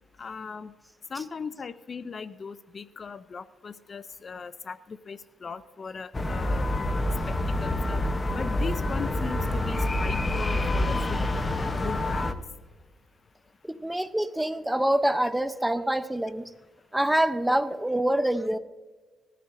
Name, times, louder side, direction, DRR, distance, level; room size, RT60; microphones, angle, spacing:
voice 1, 0.2-0.7 1.1-6.6 7.3-8.0 8.3-12.4, left 5 dB, 40° left, 14 dB, 0.5 m, -38 dB
sound 1, 6.1-12.3, left 1 dB, 20° left, 0.9 m, -27 dB
voice 2, 13.7-16.5 16.9-18.6, right 1 dB, 5° right, 11 dB, 0.7 m, -25 dB
20.0 x 14.0 x 2.7 m, 1.3 s
cardioid pair, 90°, 0 cm